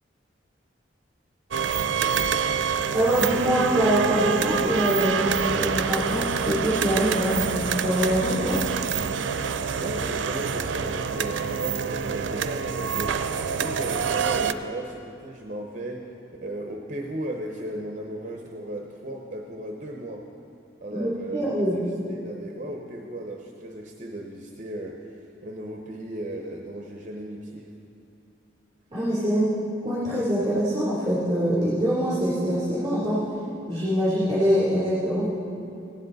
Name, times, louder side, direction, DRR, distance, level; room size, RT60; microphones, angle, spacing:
sound 1, 1.5-14.5, right 6 dB, 90° right, 0.5 m, -26 dB
voice 1, 2.9-5.2 5.5-8.6 20.9-21.8 28.9-29.5 29.8-33.2 33.7-35.3, equal, 25° right, -11 dB, 3.3 m, -24 dB
voice 2, 9.8-16.1 16.4-20.3 20.8-21.4 21.7-21.8 22.1-27.7, right 1 dB, 40° right, 1 dB, 0.7 m, -36 dB
16.0 x 10.5 x 4.0 m, 2.8 s
head